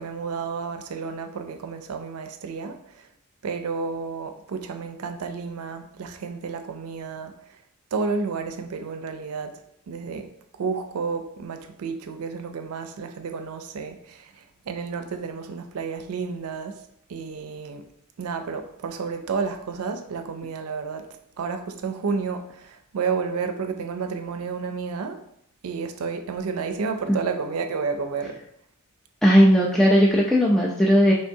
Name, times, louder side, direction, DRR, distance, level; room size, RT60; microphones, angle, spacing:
voice 1, 0.0-3.1 3.4-7.3 7.9-9.6 9.9-10.3 10.6-16.8 17.1-17.8 18.2-21.1 21.4-25.2 25.6-28.4, right 5 dB, 85° right, 0.4 m, -31 dB
voice 2, 29.2-31.1, equal, ahead, 0.3 m, -17 dB
4.5 x 3.2 x 2.6 m
head